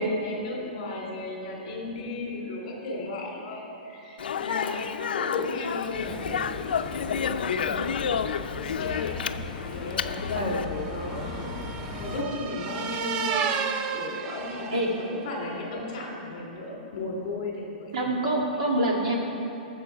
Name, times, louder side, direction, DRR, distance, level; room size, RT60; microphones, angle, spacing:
voice 1, 0.0-4.8 5.1-9.2 9.7-11.5 12.0-13.4 13.9-17.9, left 2 dB, 35° left, -2 dB, 2.9 m, -35 dB
Speech, 4.2-10.7, left 7 dB, 85° left, 0.5 m, -30 dB
sound 1, 5.9-12.2, left 3 dB, 10° left, 0.8 m, -38 dB
sound 2, 9.8-15.3, right 6 dB, 15° right, 0.3 m, -33 dB
voice 2, 10.3-10.7 14.7-14.9 17.9-19.2, right 1 dB, 45° right, -1 dB, 1.9 m, -26 dB
21.0 x 7.0 x 4.6 m, 2.9 s
hypercardioid pair, 180°, 5 cm